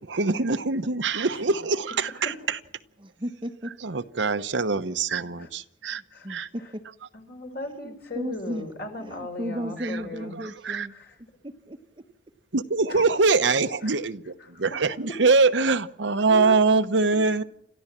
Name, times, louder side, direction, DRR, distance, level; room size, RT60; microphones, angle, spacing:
voice 1, 0.1-2.6 3.8-6.0 6.3-6.5 10.4-10.9 12.5-17.4, right 4 dB, 80° right, 1.0 m, -23 dB
voice 2, 1.3-1.7 2.0-2.6 5.4-5.5 6.1-6.3 6.5-6.8 7.1-10.3 10.9-11.2 12.9-13.2 13.8-14.0 14.4-14.8 15.1-15.2 16.3-16.6, left 2 dB, 55° left, 4.4 m, -38 dB
voice 3, 3.0-3.8 5.9-6.9 7.8-8.6 9.0-10.9 11.4-12.0, equal, 25° right, 0.9 m, -35 dB
29.5 x 14.0 x 7.4 m
head